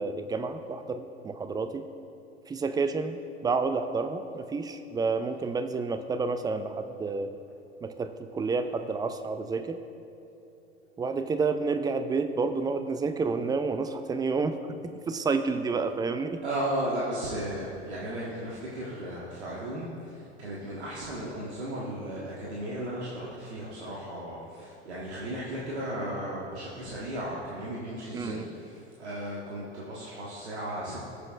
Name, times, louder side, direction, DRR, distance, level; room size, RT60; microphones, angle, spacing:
voice 1, 0.0-1.9 2.5-7.3 7.8-9.8 11.0-14.6 15.1-16.4 28.1-28.4, right 4 dB, 10° right, 9 dB, 0.4 m, -29 dB
voice 2, 16.4-31.1, right 1 dB, 75° right, -6 dB, 1.5 m, -35 dB
19.0 x 6.8 x 2.4 m, 3.0 s
figure-of-eight pair, 75°, 34 cm